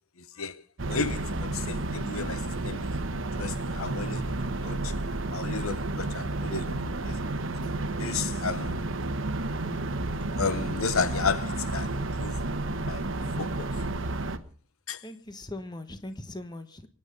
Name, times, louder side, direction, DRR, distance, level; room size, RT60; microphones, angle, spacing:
sound 1, 0.8-14.4, right 2 dB, 65° right, 1.1 m, -31 dB
voice 1, 0.9-2.9 3.4-4.4 4.6-4.9 5.3-6.8 7.0-7.2 7.6-7.7 8.0-8.8 10.4-12.4 12.9-13.1 13.4-13.7 14.9-15.0, left 5 dB, 85° left, 0.9 m, -33 dB
voice 2, 15.0-16.9, left 1 dB, 20° left, 1.2 m, -40 dB
24.0 x 9.9 x 5.2 m
head